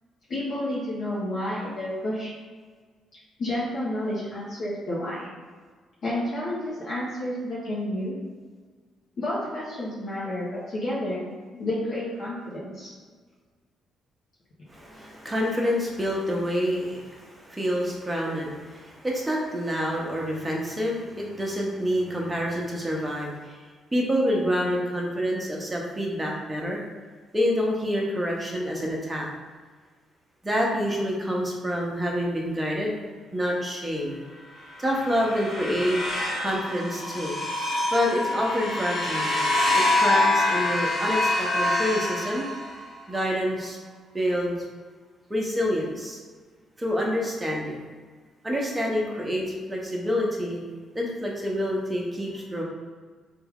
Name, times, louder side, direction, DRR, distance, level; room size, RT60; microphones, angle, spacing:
voice 1, 0.3-2.4 3.4-5.3 6.0-8.2 9.2-12.9, left 1 dB, 55° left, -7 dB, 0.7 m, -30 dB
voice 2, 14.7-23.6 23.9-26.8 27.3-29.3 30.4-32.9 33.3-34.2 34.8-36.0 36.4-37.4 37.9-39.4 39.7-42.5 43.1-43.8 44.1-44.6 45.3-46.2 46.8-47.8 48.4-50.6 50.9-52.6, equal, 10° right, -2 dB, 0.8 m, -27 dB
sound 1, 34.7-43.0, left 2 dB, 35° left, 1.1 m, -26 dB
3.3 x 2.3 x 3.5 m, 1.5 s
cardioid pair, 90°, 0 cm